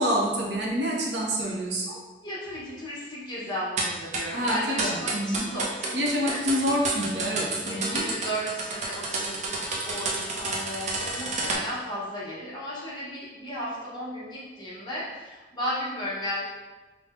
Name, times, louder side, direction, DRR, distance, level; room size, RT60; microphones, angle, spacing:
voice 1, 0.0-2.0 4.3-5.4 5.9-8.0, equal, 70° right, -2 dB, 0.8 m, -27 dB
voice 2, 2.2-6.6 7.6-9.6 9.9-16.4, equal, 25° left, -7 dB, 1.1 m, -35 dB
sound 1, 3.8-11.5, right 3 dB, 40° right, 0.6 m, -30 dB
5.1 x 2.2 x 3.6 m, 1.2 s
head